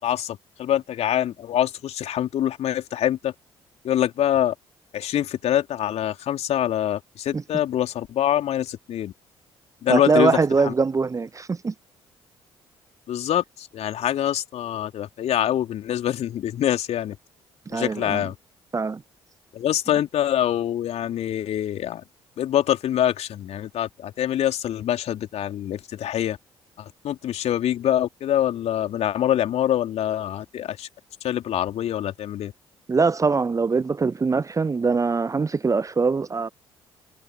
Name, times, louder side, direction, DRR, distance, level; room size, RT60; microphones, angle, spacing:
voice 1, 0.0-3.3 3.8-4.5 4.9-9.1 9.8-10.3 10.7-10.8 13.1-17.2 17.7-18.3 19.5-22.0 22.4-26.4 27.0-30.9 31.2-32.5, left 11 dB, 55° left, 3.3 m, -25 dB
voice 2, 9.9-11.7 17.7-18.2 18.7-19.0 32.9-36.5, right 4 dB, 25° right, 0.8 m, -22 dB
figure-of-eight pair, 45°, 14 cm